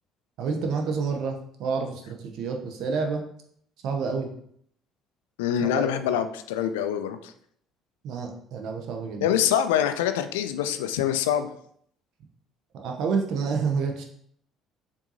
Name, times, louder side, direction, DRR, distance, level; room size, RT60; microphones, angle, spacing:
voice 1, 0.4-3.2 3.8-4.3 5.6-6.0 8.0-9.2 12.7-14.0, right 5 dB, 60° right, 3 dB, 0.6 m, -29 dB
voice 2, 5.4-7.3 9.2-11.5, left 10 dB, 70° left, 9 dB, 0.3 m, -25 dB
6.7 x 2.7 x 2.6 m, 0.66 s
figure-of-eight pair, 50°, 0 cm